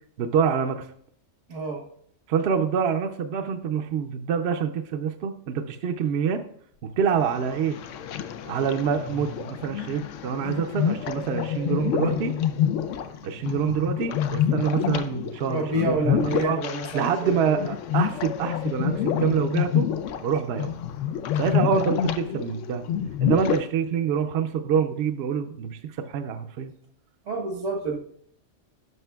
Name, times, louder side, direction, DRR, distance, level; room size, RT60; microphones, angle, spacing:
voice 1, 0.2-0.9 2.3-6.4 6.8-7.8 8.5-12.4 13.2-16.6 16.9-19.9 20.2-20.7 21.4-22.8 23.2-26.7, right 7 dB, 65° right, 6 dB, 0.7 m, -26 dB
voice 2, 1.5-1.8 15.5-17.7 27.3-28.0, right 2 dB, 80° right, 2 dB, 1.5 m, -28 dB
sound 1, 7.1-23.6, left 9 dB, 85° left, 0.9 m, -28 dB
11.0 x 6.3 x 2.3 m, 0.65 s
omnidirectional pair, 1.2 m